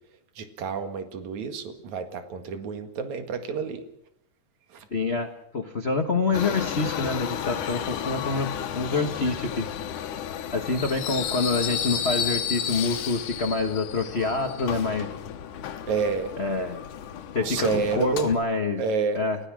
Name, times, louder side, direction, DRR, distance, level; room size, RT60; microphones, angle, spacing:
voice 1, 0.4-3.8 4.7-4.9 15.9-16.3 17.4-18.3 18.8-19.2, right 5 dB, 70° right, 7 dB, 3.2 m, -29 dB
voice 2, 4.9-9.7 10.5-15.1 16.4-16.8 17.3-18.8 19.1-19.4, left 3 dB, 55° left, 5 dB, 0.7 m, -27 dB
Subway metro underground, 6.3-18.3, left 9 dB, 90° left, 2.8 m, -32 dB
29.5 x 16.0 x 6.3 m, 0.77 s
omnidirectional pair, 3.5 m